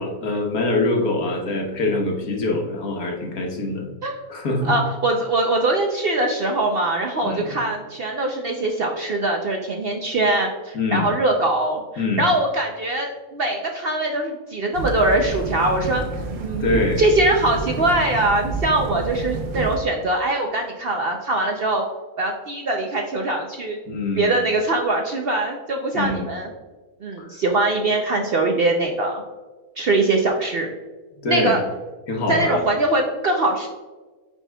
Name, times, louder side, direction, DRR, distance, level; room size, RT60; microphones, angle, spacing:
voice 1, 0.0-3.9 4.3-4.8 7.2-7.5 10.7-11.1 12.0-12.2 16.6-17.0 23.9-24.4 25.9-26.3 27.2-27.3 31.2-31.6 32.1-32.6, left 2 dB, 70° left, 0 dB, 1.5 m, -24 dB
voice 2, 4.6-16.0 16.4-21.8 22.2-23.8 24.2-26.5 27.0-29.2 29.8-30.7 31.3-31.6 32.3-33.7, right 2 dB, 55° right, 2 dB, 0.6 m, -22 dB
sound 1, 14.7-19.8, right 3 dB, 75° right, 1.3 m, -29 dB
9.9 x 4.3 x 2.3 m, 1.3 s
omnidirectional pair, 1.6 m